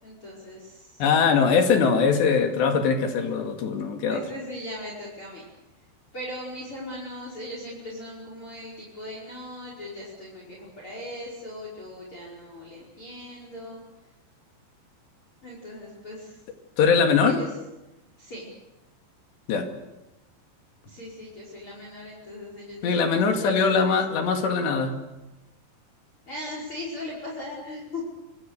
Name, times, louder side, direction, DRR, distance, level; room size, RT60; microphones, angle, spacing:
voice 1, 0.0-1.0 4.1-5.5 6.1-13.8 15.4-16.4 17.2-17.5 18.2-18.5 20.8-23.5 23.8-23.9 26.3-28.1, left 1 dB, 30° left, -2 dB, 5.8 m, -39 dB
voice 2, 1.0-4.2 16.8-17.4 19.5-19.7 22.8-25.0, left 5 dB, 70° left, 4 dB, 4.4 m, -21 dB
25.5 x 25.0 x 6.7 m, 1.0 s
omnidirectional pair, 5.3 m